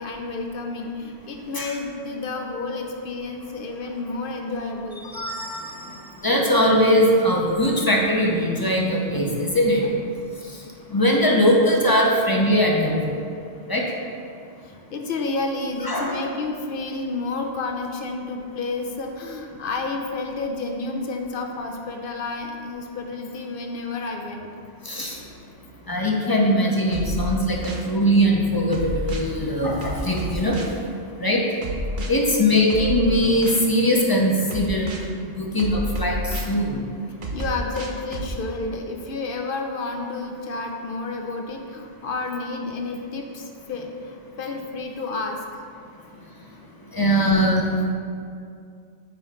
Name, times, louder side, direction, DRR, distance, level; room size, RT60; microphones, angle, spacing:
voice 1, 0.0-5.0 5.8-6.1 14.6-24.5 27.2-27.4 32.1-32.4 37.3-45.6, left 3 dB, 55° left, 3 dB, 0.8 m, -31 dB
voice 2, 5.1-6.0 6.2-9.9 10.9-13.2 13.7-13.8 15.8-16.2 24.9-25.2 25.9-27.6 27.8-30.6 31.2-31.4 32.1-34.9 35.4-36.8 46.9-47.6, equal, 25° left, -2 dB, 0.6 m, -20 dB
sound 1, 26.9-27.9 28.7-29.3 29.8-30.8 31.6-32.1 32.7-33.7 34.5-35.1 35.6-36.6 37.2-38.3, equal, 50° right, 0.8 m, -30 dB
8.7 x 3.2 x 5.1 m, 2.4 s
omnidirectional pair, 1.2 m